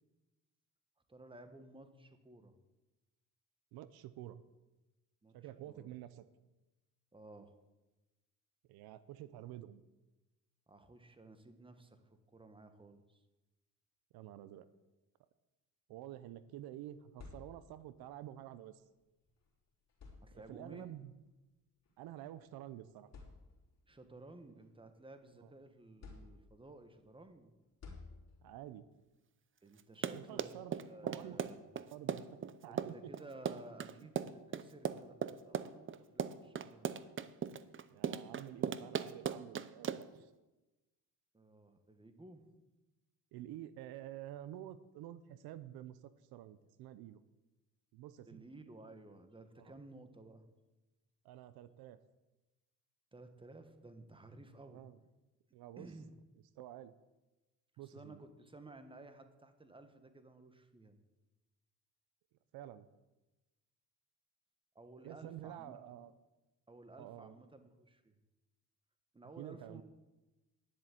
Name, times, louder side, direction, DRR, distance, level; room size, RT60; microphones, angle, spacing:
voice 1, 1.1-2.5 5.2-5.9 7.1-7.6 10.7-13.2 20.2-20.9 23.9-27.5 29.6-30.5 30.8-31.6 32.7-36.9 41.3-42.5 48.3-50.4 53.1-54.8 55.8-56.1 57.7-61.0 64.7-65.8 66.7-68.2 69.1-69.8, right 2 dB, 15° right, 8 dB, 1.5 m, -55 dB
voice 2, 3.7-4.4 5.3-6.2 8.7-9.8 14.1-14.7 15.9-18.8 20.3-21.1 22.0-23.1 25.4-25.5 28.4-28.9 30.1-30.8 31.0-31.4 31.9-32.9 37.9-40.3 43.3-47.2 47.9-48.4 49.6-49.7 51.2-52.0 54.7-55.0 55.5-55.9 56.6-56.9 57.8-58.2 62.5-62.9 65.0-66.1 67.0-67.3 69.4-69.8, right 12 dB, 80° right, 14 dB, 0.7 m, -49 dB
sound 1, 16.9-18.0 19.3-19.4 19.9-20.8 21.9-22.0 22.6-22.7 23.1-23.9 24.4-25.4 26.0-26.8 27.8-28.7, left 4 dB, 45° left, 3.8 m, -55 dB
Run, 29.8-40.2, right 8 dB, 35° right, 0.7 m, -38 dB
10.5 x 7.6 x 8.4 m, 1.1 s
cardioid pair, 85°, 36 cm